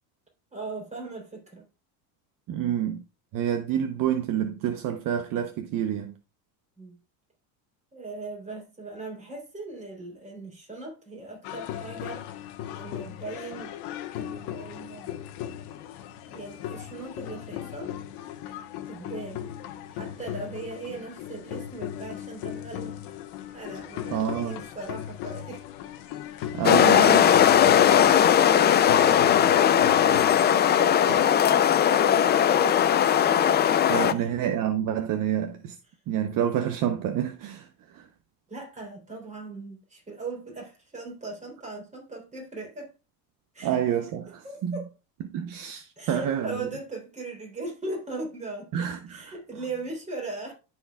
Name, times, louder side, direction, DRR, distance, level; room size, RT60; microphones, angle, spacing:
voice 1, 0.5-1.6 6.8-7.0 7.9-12.3 12.8-13.8 14.1-15.2 16.3-18.0 18.9-19.5 19.9-23.0 23.5-25.6 26.2-32.8 33.9-34.3 35.9-36.0 38.5-42.9 43.5-43.8 44.4-44.9 46.0-50.5, right 3 dB, 15° right, 3.5 m, -39 dB
voice 2, 2.5-3.0 3.3-6.2 24.1-24.6 26.5-27.2 33.9-35.8 36.1-37.7 37.9-38.1 43.6-44.7 45.3-46.6 48.7-49.3, right 10 dB, 50° right, 0.8 m, -28 dB
sound 1, 11.4-30.4, left 11 dB, 70° left, 1.2 m, -37 dB
sound 2, 26.6-34.1, left 9 dB, 25° left, 0.4 m, -19 dB
13.5 x 4.6 x 2.3 m
cardioid pair, 120°, 42 cm